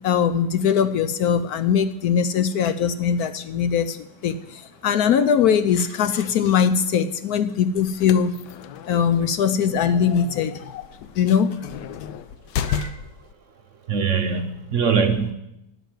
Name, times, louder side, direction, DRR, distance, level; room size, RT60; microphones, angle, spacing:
voice 1, 0.0-8.3 8.9-10.9 11.2-11.6, left 7 dB, 70° left, 12 dB, 1.1 m, -21 dB
sound 1, 7.8-13.3, left 8 dB, 85° left, 1.3 m, -33 dB
voice 2, 12.6-13.0 13.9-15.3, right 6 dB, 55° right, 7 dB, 0.9 m, -23 dB
11.5 x 6.6 x 9.2 m, 0.83 s
omnidirectional pair, 1.9 m